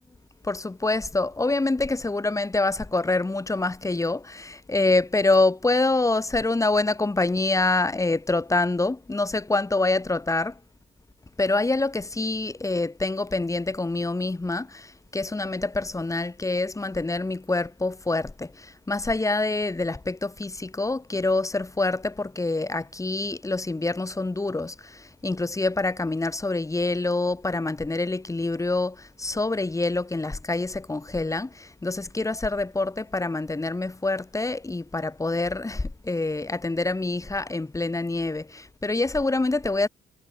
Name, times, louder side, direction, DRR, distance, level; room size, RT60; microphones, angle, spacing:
voice 1, 0.4-10.6 11.4-39.9, left 2 dB, 15° left, 2.1 m, -26 dB
cardioid pair, 90°, 20 cm